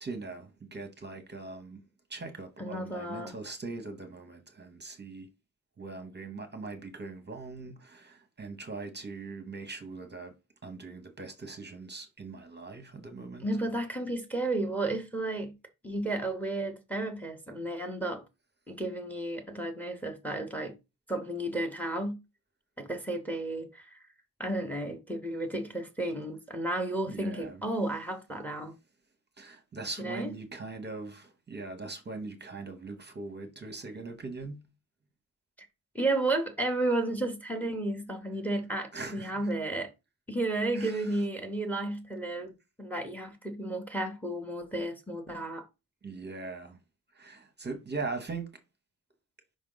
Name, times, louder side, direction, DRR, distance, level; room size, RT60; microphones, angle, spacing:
voice 1, 0.0-1.8 2.1-5.3 5.8-10.3 10.6-13.5 27.1-27.6 29.4-34.7 38.9-39.5 40.7-41.2 46.0-46.8 47.1-48.5, right 3 dB, 30° right, 0.8 m, -41 dB
voice 2, 2.6-3.3 13.4-15.5 15.8-18.2 18.7-20.7 21.1-22.2 22.8-24.0 24.4-28.7 30.0-30.3 35.9-39.9 40.3-42.5 42.8-45.7, right 2 dB, 5° left, 0.8 m, -32 dB
5.2 x 5.0 x 3.8 m
wide cardioid pair, 175°, 37 cm